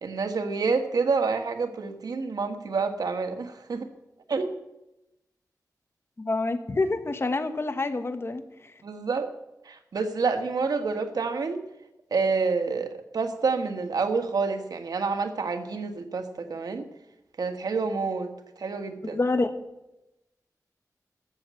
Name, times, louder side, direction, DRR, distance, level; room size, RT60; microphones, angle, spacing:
voice 1, 0.0-3.9 4.3-4.5 8.8-9.3 9.6-11.6 12.1-16.9 17.4-18.3 18.6-19.2, right 4 dB, 75° right, 6 dB, 1.6 m, -28 dB
voice 2, 6.2-8.4 19.0-19.5, left 3 dB, 40° left, 9 dB, 1.3 m, -27 dB
14.5 x 7.4 x 8.3 m, 0.92 s
wide cardioid pair, 75°, 7 cm